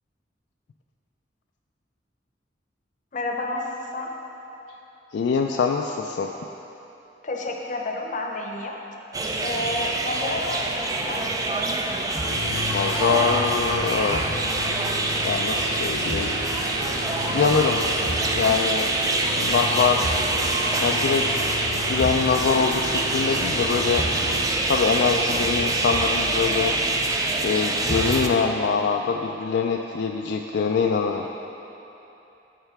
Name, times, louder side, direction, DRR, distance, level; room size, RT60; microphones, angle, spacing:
voice 1, 3.1-3.7 3.9-4.1 7.2-8.8 9.4-11.2, left 2 dB, 45° left, 1 dB, 0.7 m, -30 dB
voice 2, 5.1-6.3 12.7-14.3 15.2-16.3 17.3-17.8 18.3-18.9 19.4-20.2 20.8-21.3 21.9-24.1 24.7-26.7 27.4-31.3, left 5 dB, 65° left, 2 dB, 0.3 m, -23 dB
sound 1, 9.1-28.3, right 2 dB, 20° right, 0.4 m, -25 dB
sound 2, 12.2-24.5, left 2 dB, 90° left, 0.8 m, -33 dB
9.1 x 6.6 x 3.4 m, 3.0 s
head